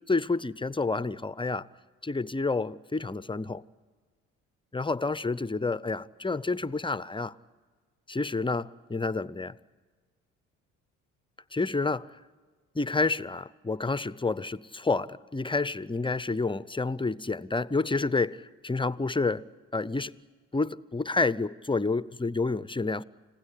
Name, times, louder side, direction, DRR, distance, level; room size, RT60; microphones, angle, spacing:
voice 1, 0.1-1.7 2.0-3.6 4.7-7.3 8.1-9.6 11.5-12.1 12.7-19.4 19.7-20.1 20.5-23.0, left 3 dB, 15° left, 0.7 m, -29 dB
30.0 x 16.5 x 9.9 m
supercardioid pair, 60°, 33 cm